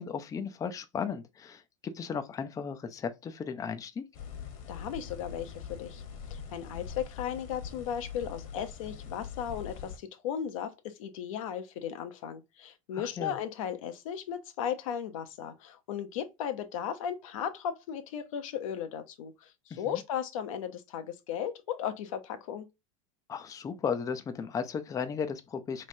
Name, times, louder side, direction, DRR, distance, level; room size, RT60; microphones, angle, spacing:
voice 1, 0.0-4.0 12.9-13.4 19.7-20.0 23.3-25.9, left 6 dB, 20° left, 0.5 m, -35 dB
sound 1, 4.1-10.0, left 7 dB, 55° left, 1.2 m, -43 dB
voice 2, 4.7-6.0 6.3-22.7, left 9 dB, 80° left, 0.8 m, -36 dB
3.2 x 3.2 x 2.5 m
supercardioid pair, 110°, 17 cm